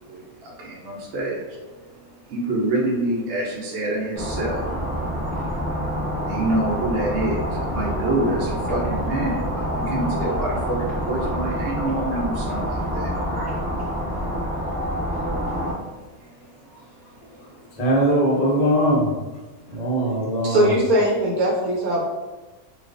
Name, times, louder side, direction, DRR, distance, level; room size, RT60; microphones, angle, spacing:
voice 1, 0.0-17.8, right 1 dB, 65° right, -2 dB, 0.7 m, -29 dB
sound 1, 4.1-15.7, equal, 5° right, 0.9 m, -27 dB
voice 2, 17.5-19.1 19.7-20.7, right 1 dB, 65° left, -4 dB, 0.3 m, -21 dB
voice 3, 20.4-22.0, equal, 80° right, -4 dB, 1.1 m, -20 dB
2.3 x 2.3 x 2.4 m, 1.2 s
omnidirectional pair, 1.5 m